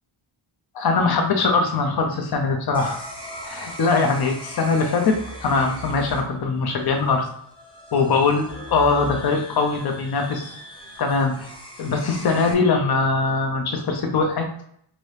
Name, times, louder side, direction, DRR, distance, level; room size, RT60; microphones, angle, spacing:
voice 1, 0.7-3.0 3.4-7.3 7.9-10.5 11.0-11.5 11.8-14.5, left 4 dB, 50° left, 4 dB, 0.7 m, -21 dB
sound 1, 2.7-12.5, equal, 10° left, 0.6 m, -39 dB
2.9 x 2.7 x 3.3 m, 0.67 s
wide cardioid pair, 120°, 49 cm